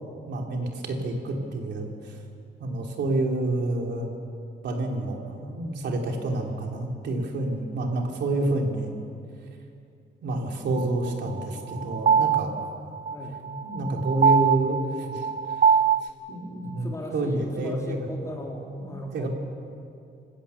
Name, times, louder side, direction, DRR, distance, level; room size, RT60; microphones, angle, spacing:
voice 1, 0.3-2.1 2.6-4.1 4.6-8.9 10.2-12.6 13.6-15.3 15.6-15.7 16.0-18.1 18.8-19.3, right 2 dB, 65° right, 1 dB, 3.2 m, -29 dB
sound 1, 10.8-16.1, right 7 dB, 45° right, 0.5 m, -23 dB
voice 2, 13.1-13.4 16.8-19.3, equal, 15° left, -1 dB, 3.4 m, -37 dB
25.5 x 16.5 x 7.1 m, 2.6 s
cardioid pair, 150°, 19 cm